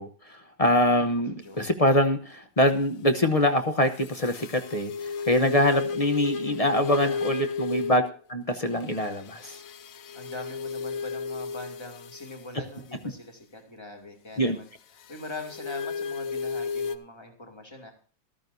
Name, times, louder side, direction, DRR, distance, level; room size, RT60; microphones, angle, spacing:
voice 1, 0.0-8.0 8.3-9.6 14.4-14.6, left 1 dB, 35° left, 8 dB, 0.6 m, -24 dB
sound 1, 3.9-8.2 8.8-12.5 15.0-17.0, left 5 dB, 65° left, 0.9 m, -33 dB
voice 2, 6.6-7.5 10.1-14.7 15.1-17.9, left 2 dB, 15° left, 3 dB, 2.3 m, -42 dB
14.0 x 13.0 x 2.6 m, 0.41 s
omnidirectional pair, 2.0 m